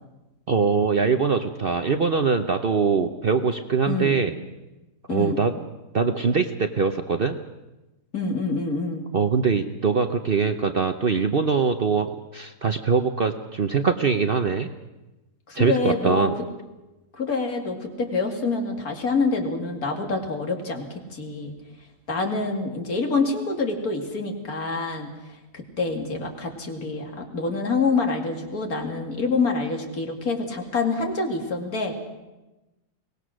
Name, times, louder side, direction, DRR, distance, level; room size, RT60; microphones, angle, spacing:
voice 1, 0.5-4.3 5.1-5.5 5.9-7.4 9.1-14.7 15.5-16.3, right 5 dB, 45° right, 7 dB, 0.8 m, -22 dB
voice 2, 3.9-4.2 5.1-5.4 8.1-9.0 15.5-16.3 17.1-21.5 22.1-25.1 25.5-31.9, left 3 dB, 65° left, 3 dB, 2.8 m, -26 dB
23.0 x 19.0 x 6.4 m, 1.0 s
omnidirectional pair, 1.7 m